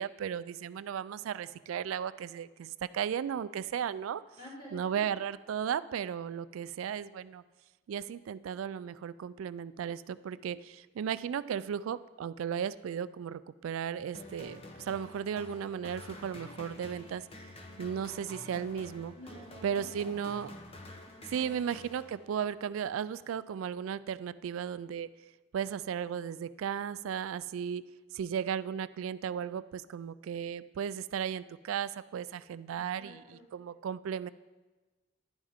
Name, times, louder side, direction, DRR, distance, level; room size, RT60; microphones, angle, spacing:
voice 1, 0.0-4.2 4.7-7.4 7.9-17.3 17.8-19.1 19.6-20.5 21.3-25.1 25.5-27.8 28.1-34.3, right 8 dB, 80° right, 16 dB, 0.3 m, -35 dB
voice 2, 4.4-5.0 19.1-20.4 21.0-21.4 32.7-33.4, equal, 45° left, -6 dB, 3.3 m, -51 dB
sound 1, 14.1-22.5, left 2 dB, 30° left, 0.9 m, -49 dB
10.5 x 10.0 x 3.6 m, 1.2 s
head